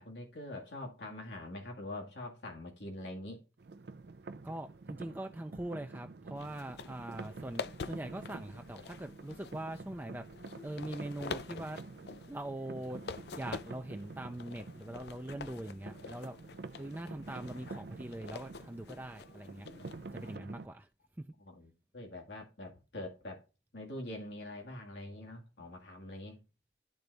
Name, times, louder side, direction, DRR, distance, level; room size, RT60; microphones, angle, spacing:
voice 1, 0.0-3.4 14.2-14.4 20.2-20.3 21.4-23.4 23.7-26.4, left 1 dB, 85° left, 2.0 m, -44 dB
sound 1, 3.6-20.7, right 3 dB, 65° right, 0.5 m, -48 dB
voice 2, 4.4-10.2 10.6-11.8 12.3-13.0 13.3-16.4 16.8-19.7 20.1-20.9, right 1 dB, 10° right, 0.4 m, -42 dB
sound 2, 6.4-20.4, left 4 dB, 65° left, 0.5 m, -47 dB
12.0 x 4.0 x 3.4 m
head